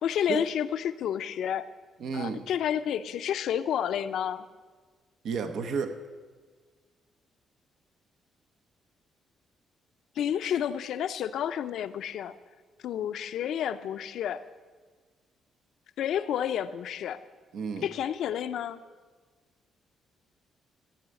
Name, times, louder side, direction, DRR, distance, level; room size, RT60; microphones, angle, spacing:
voice 1, 0.0-1.7 2.1-4.4 10.2-12.3 12.8-14.4 16.0-17.2 17.8-18.8, left 9 dB, 75° left, 11 dB, 0.5 m, -30 dB
voice 2, 2.0-2.4 5.2-6.0 17.5-17.9, right 5 dB, 70° right, 8 dB, 0.9 m, -32 dB
14.5 x 5.6 x 8.9 m, 1.5 s
cardioid pair, 90°, 0 cm